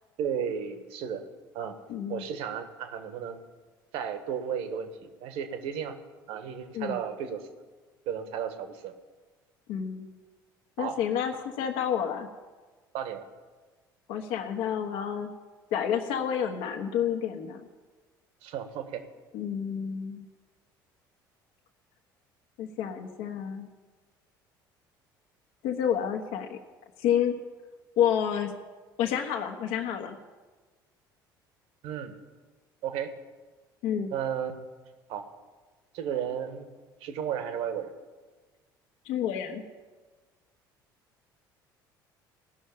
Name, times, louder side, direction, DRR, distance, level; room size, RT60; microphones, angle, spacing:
voice 1, 0.2-1.3 1.5-1.8 2.1-3.4 3.9-6.0 6.3-7.4 8.0-8.9 10.8-11.0 12.9-13.3 18.4-19.0 31.8-32.1 32.8-33.1 34.1-34.6 35.1-35.2 35.9-36.7 37.0-37.9, right 8 dB, 60° right, 8 dB, 1.5 m, -33 dB
voice 2, 1.9-2.2 6.7-7.0 9.7-10.1 10.8-12.3 14.1-15.3 15.7-17.7 19.3-20.3 22.6-23.7 25.6-26.6 27.0-27.3 28.0-28.5 29.0-30.2 33.8-34.1 39.0-39.6, left 9 dB, 60° left, 3 dB, 1.3 m, -29 dB
17.0 x 6.4 x 9.8 m, 1.3 s
figure-of-eight pair, 60°, 11 cm